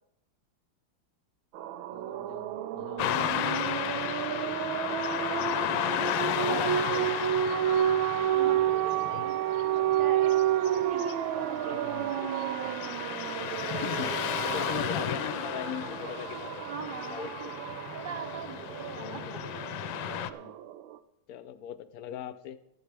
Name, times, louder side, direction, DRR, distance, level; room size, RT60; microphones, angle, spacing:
sound 1, 1.5-21.0, right 11 dB, 90° right, 1.4 m, -31 dB
voice 1, 1.9-4.0 4.9-6.1 6.4-7.3 11.7-12.1 13.7-17.5 18.9-19.3 20.3-20.8 21.3-22.6, left 9 dB, 65° left, 13 dB, 0.9 m, -42 dB
Car passing by / Traffic noise roadway noise, 3.0-20.3, left 11 dB, 80° left, 1.4 m, -34 dB
voice 2, 8.3-10.4 10.9-12.3 16.6-17.5 17.9-19.2, right 5 dB, 45° right, 9 dB, 0.7 m, -42 dB
15.0 x 12.0 x 3.4 m, 0.83 s
omnidirectional pair, 2.1 m